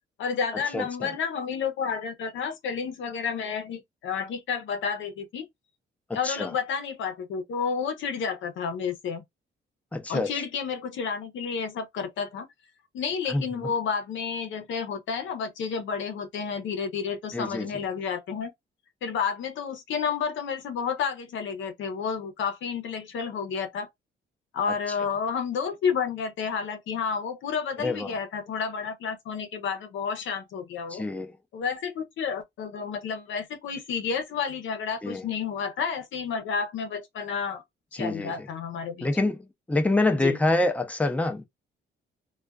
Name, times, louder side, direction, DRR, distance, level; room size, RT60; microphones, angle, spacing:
voice 1, 0.2-5.5 6.1-9.2 10.1-12.5 12.9-18.5 19.0-23.9 24.5-31.1 31.5-37.6 37.9-39.1 40.1-40.4, left 6 dB, 75° left, 0.8 m, -31 dB
voice 2, 0.7-1.1 6.2-6.5 9.9-10.3 13.3-13.4 17.3-17.7 27.8-28.1 30.9-31.3 35.0-35.2 37.9-38.3 39.0-41.5, left 2 dB, 5° left, 0.5 m, -26 dB
2.3 x 2.3 x 2.3 m
cardioid pair, 90°, 20 cm